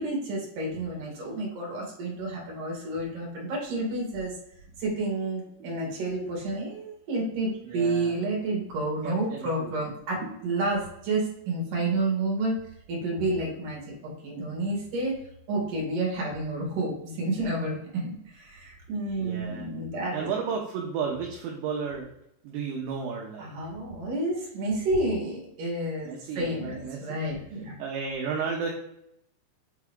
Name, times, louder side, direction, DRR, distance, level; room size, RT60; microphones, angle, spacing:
voice 1, 0.0-4.4 4.8-12.6 12.9-20.3 23.4-27.8, right 2 dB, 55° right, -2 dB, 3.0 m, -30 dB
voice 2, 7.6-8.2 9.0-9.8 10.2-10.4 19.2-19.7 20.1-22.1 22.4-23.5 26.0-27.2 27.8-28.7, right 6 dB, 80° right, 0 dB, 2.6 m, -33 dB
8.4 x 3.6 x 3.6 m, 0.76 s
omnidirectional pair, 5.7 m